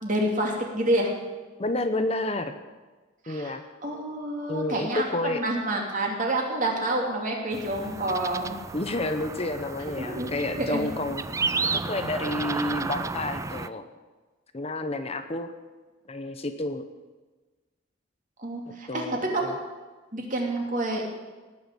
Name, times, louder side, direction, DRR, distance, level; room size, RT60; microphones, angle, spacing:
voice 1, 0.0-1.1 3.2-3.5 3.8-8.6 10.0-10.3 10.6-10.8 18.4-19.0 19.3-19.6 20.1-21.0, right 1 dB, 40° right, 0 dB, 2.8 m, -28 dB
voice 2, 1.6-2.5 3.3-3.6 4.5-5.4 8.7-11.2 11.7-13.8 14.5-15.5 16.1-16.9 18.7-19.5, left 2 dB, 30° left, 8 dB, 0.8 m, -30 dB
sound 1, 7.5-13.7, right 4 dB, 15° right, 0.3 m, -32 dB
18.0 x 6.6 x 8.2 m, 1.3 s
head